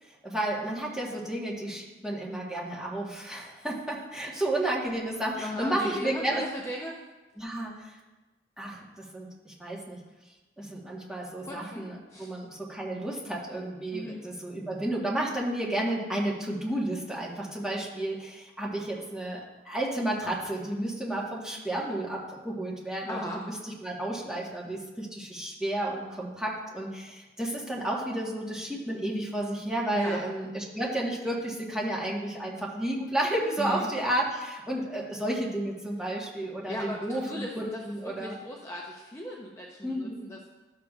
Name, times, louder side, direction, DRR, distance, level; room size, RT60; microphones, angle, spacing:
voice 1, 0.0-6.5 7.4-8.0 8.6-10.0 10.6-23.5 23.8-38.4 39.8-40.2, right 1 dB, 5° right, -4 dB, 1.2 m, -32 dB
voice 2, 5.4-7.0 11.4-11.8 12.1-12.3 13.9-14.2 23.1-23.4 29.9-30.2 33.6-33.9 36.7-40.5, equal, 15° left, -2 dB, 0.6 m, -37 dB
12.5 x 6.5 x 2.4 m, 1.1 s
head